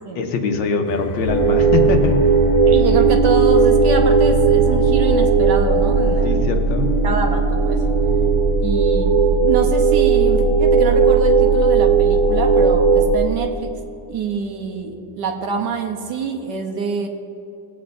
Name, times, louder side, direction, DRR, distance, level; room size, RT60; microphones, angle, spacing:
voice 1, 0.2-2.2 6.2-6.9, left 4 dB, 75° left, 4 dB, 1.6 m, -22 dB
sound 1, 0.8-16.3, left 1 dB, 35° left, 0.9 m, -33 dB
sound 2, 1.3-13.2, right 4 dB, 45° right, 0.8 m, -16 dB
voice 2, 2.7-6.5 7.0-7.9 8.6-13.7 14.1-17.1, right 6 dB, 70° right, 3 dB, 1.4 m, -25 dB
18.5 x 8.1 x 2.6 m, 2.6 s
omnidirectional pair, 2.1 m